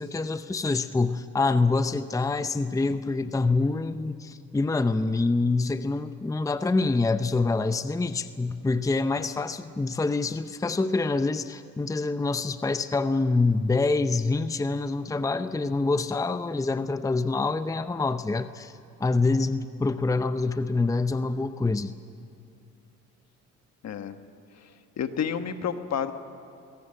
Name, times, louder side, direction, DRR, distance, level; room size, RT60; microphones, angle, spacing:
voice 1, 0.0-18.7 19.0-21.9, left 3 dB, 10° left, 11 dB, 0.6 m, -26 dB
voice 2, 23.8-24.2 25.0-26.1, left 7 dB, 60° left, 9 dB, 1.4 m, -29 dB
22.5 x 17.5 x 7.7 m, 2.6 s
cardioid pair, 90°, 30 cm